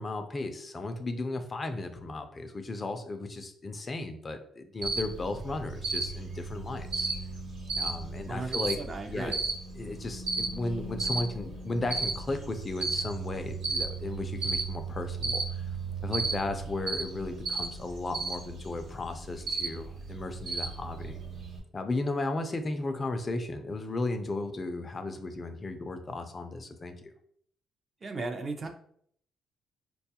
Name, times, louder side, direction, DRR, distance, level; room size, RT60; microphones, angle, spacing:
voice 1, 0.0-7.1 7.7-8.8 9.1-9.4 9.8-15.7 16.0-21.2 21.7-27.1, left 2 dB, 35° left, 7 dB, 0.4 m, -35 dB
Cricket, 4.8-21.6, right 3 dB, 85° right, 1.1 m, -34 dB
voice 2, 8.3-9.3 28.0-28.7, right 3 dB, 40° right, 4 dB, 0.5 m, -36 dB
4.0 x 2.3 x 2.8 m, 0.64 s
cardioid pair, 90°, 0 cm